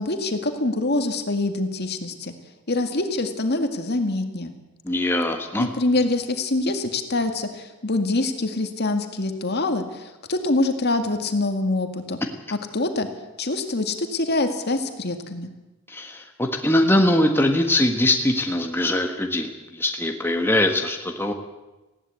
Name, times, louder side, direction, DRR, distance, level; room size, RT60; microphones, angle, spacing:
voice 1, 0.0-2.3 2.7-4.5 5.6-12.2 12.7-13.1 13.4-15.5, left 2 dB, 50° left, 6 dB, 2.1 m, -25 dB
voice 2, 4.8-5.7 15.9-21.3, left 1 dB, 10° left, 3 dB, 1.5 m, -22 dB
20.0 x 16.0 x 8.6 m, 1.1 s
head